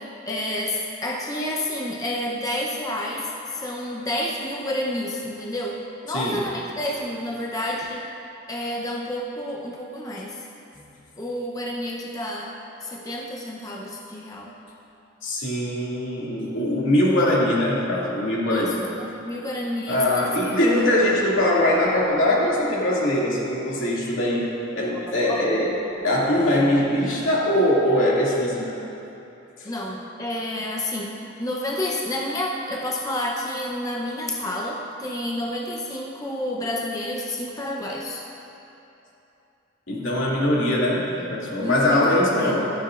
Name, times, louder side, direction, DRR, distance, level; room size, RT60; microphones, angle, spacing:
voice 1, 0.3-8.1 8.5-10.4 11.2-12.5 12.8-14.5 18.5-20.4 20.8-20.9 25.3-25.6 29.6-38.2 41.6-42.7, left 1 dB, 20° left, -2 dB, 0.7 m, -30 dB
voice 2, 15.2-18.8 19.9-25.7 26.0-28.8 29.6-29.7 39.9-42.7, left 1 dB, 75° left, -5 dB, 2.4 m, -22 dB
sound 1, 20.8-23.3 23.6-23.7 24.6-27.3, equal, 15° right, 1.1 m, -40 dB
15.5 x 13.0 x 2.5 m, 2.9 s
head